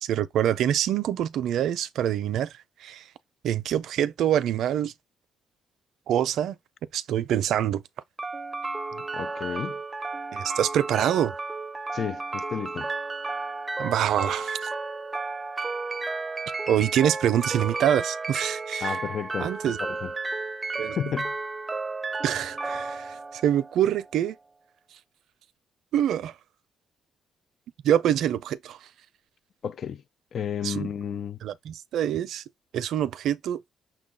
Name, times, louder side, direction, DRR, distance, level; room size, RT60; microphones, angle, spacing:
voice 1, 0.0-3.0 3.4-4.9 6.1-6.6 6.9-7.8 10.3-11.3 13.8-14.7 16.7-19.0 19.4-19.8 20.8-21.0 22.2-24.4 25.9-26.3 27.8-28.8 30.6-30.9 31.4-32.4 32.7-33.6, right 10 dB, 75° right, 0.5 m, -25 dB
sound 1, 8.2-24.2, right 3 dB, 20° right, 0.5 m, -33 dB
voice 2, 8.9-9.8 11.9-12.9 18.8-20.1 20.9-21.3 29.6-30.0 30.3-31.4, left 8 dB, 55° left, 0.3 m, -32 dB
6.0 x 2.3 x 3.7 m
cardioid pair, 90°, 0 cm